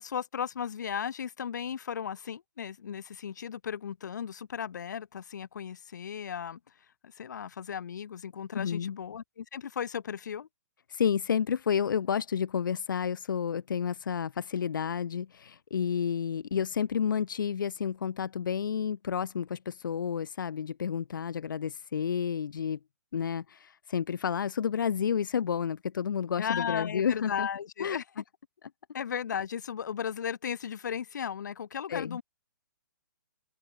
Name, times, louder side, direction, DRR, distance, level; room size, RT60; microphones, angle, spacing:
voice 1, 0.0-6.6 7.0-10.5 26.4-28.0 28.9-32.2, left 8 dB, 65° left, 0.8 m, -36 dB
voice 2, 8.5-8.9 10.9-22.8 23.1-27.5 27.8-28.0 31.9-32.2, left 7 dB, 90° left, 0.5 m, -30 dB
hypercardioid pair, 170°, 11 cm